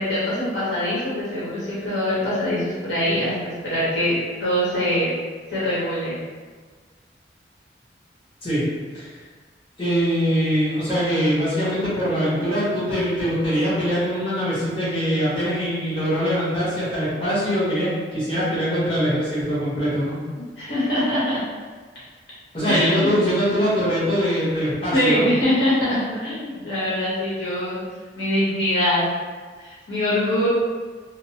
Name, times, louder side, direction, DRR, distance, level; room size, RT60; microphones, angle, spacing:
voice 1, 0.0-5.1 5.5-6.2 20.4-21.4 22.7-23.2 24.9-27.8 28.2-29.0 29.6-30.5, left 1 dB, 90° left, -9 dB, 1.0 m, -23 dB
voice 2, 9.8-20.2 22.5-25.3, equal, 30° left, -12 dB, 1.1 m, -22 dB
2.9 x 2.0 x 2.8 m, 1.5 s
head